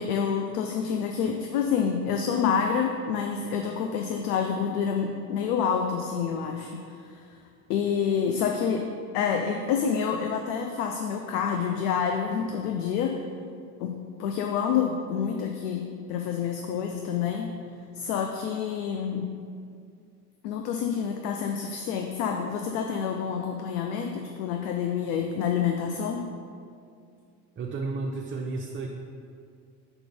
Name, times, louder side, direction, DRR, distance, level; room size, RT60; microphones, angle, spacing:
voice 1, 0.0-7.2 7.7-8.9 9.1-13.2 13.8-17.5 17.9-19.4 20.4-26.3, left 7 dB, 70° left, 4 dB, 0.6 m, -28 dB
voice 2, 27.6-28.9, right 3 dB, 25° right, -1 dB, 0.6 m, -32 dB
5.3 x 4.6 x 5.2 m, 2.3 s
hypercardioid pair, 65°, 47 cm